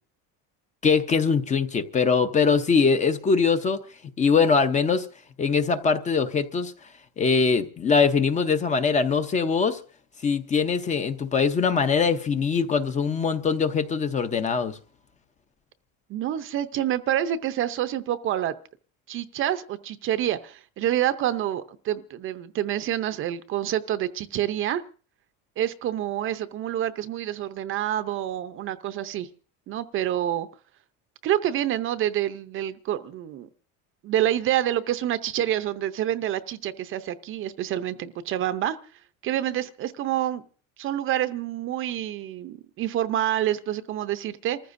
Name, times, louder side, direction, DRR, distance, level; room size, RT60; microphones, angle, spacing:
voice 1, 0.8-3.8 4.2-5.1 5.4-6.7 7.2-9.8 10.2-14.8, left 5 dB, 20° left, 0.6 m, -22 dB
voice 2, 16.1-18.5 19.1-24.8 25.6-29.3 29.7-30.5 31.2-33.5 34.0-38.8 39.2-40.4 40.8-44.6, right 11 dB, 35° right, 0.6 m, -27 dB
29.0 x 14.5 x 2.6 m
cardioid pair, 165°, 35 cm